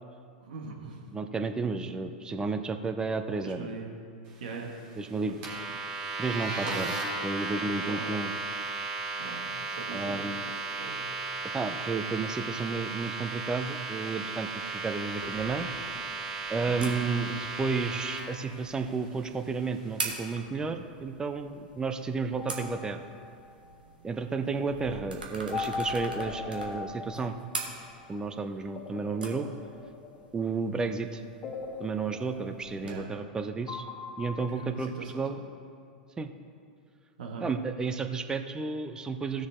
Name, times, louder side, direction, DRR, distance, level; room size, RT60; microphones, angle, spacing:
voice 1, 0.4-1.0 3.4-4.0 4.4-4.7 7.8-8.1 9.2-10.2 10.8-11.0 16.7-17.0 32.7-33.1 34.5-35.4 37.2-37.5, right 4 dB, 70° right, 0 dB, 1.8 m, -41 dB
voice 2, 1.1-3.7 5.0-5.4 6.2-8.3 9.9-10.5 11.5-15.7 16.5-23.1 24.0-27.4 28.1-29.5 30.3-31.2 31.8-33.8 34.2-35.4 36.2-36.3 37.4-39.5, right 4 dB, 15° right, 8 dB, 0.7 m, -32 dB
sound 1, 5.4-18.2, right 3 dB, 50° right, 2.8 m, -35 dB
sound 2, 15.1-32.9, right 3 dB, 85° right, 1.4 m, -44 dB
sound 3, 22.4-23.7 25.5-28.1 28.7-30.7 31.4-33.3 33.7-35.0, left 5 dB, 35° left, 1.2 m, -40 dB
16.0 x 6.4 x 3.7 m, 2.4 s
hypercardioid pair, 100°, 5 cm